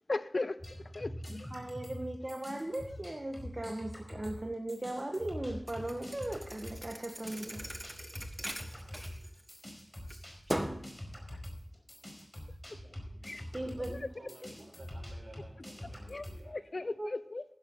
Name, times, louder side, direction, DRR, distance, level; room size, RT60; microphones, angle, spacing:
voice 1, 0.1-0.6 0.9-1.5 13.2-13.4 16.1-17.4, left 2 dB, 60° left, 0.7 m, -37 dB
sound 1, 0.6-4.4 4.7-16.4, equal, 15° left, 5.0 m, -45 dB
voice 2, 1.5-7.6 13.5-14.4 17.0-17.1, right 1 dB, 35° right, 1.7 m, -38 dB
Thump thud, 5.7-9.7 10.1-10.9, equal, 10° right, 1.6 m, -40 dB
voice 3, 8.8-9.3 12.8-13.4 13.7-13.8 14.1-16.9, right 1 dB, 60° right, 6.8 m, -56 dB
15.0 x 11.5 x 4.0 m
wide cardioid pair, 60°, 0 cm